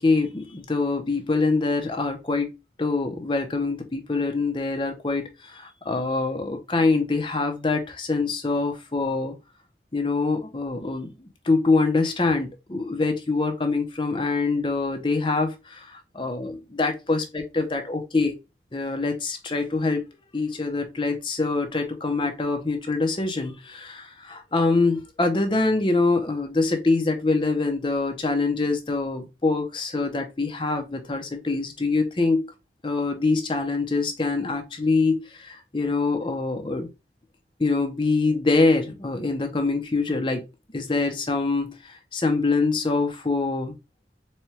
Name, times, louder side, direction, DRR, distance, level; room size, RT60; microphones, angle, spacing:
voice 1, 0.0-9.4 9.9-18.3 18.7-20.0 20.3-32.5 32.8-36.9 37.6-40.4 40.7-43.7, left 3 dB, 25° left, 0.6 m, -24 dB
4.3 x 2.3 x 3.0 m
head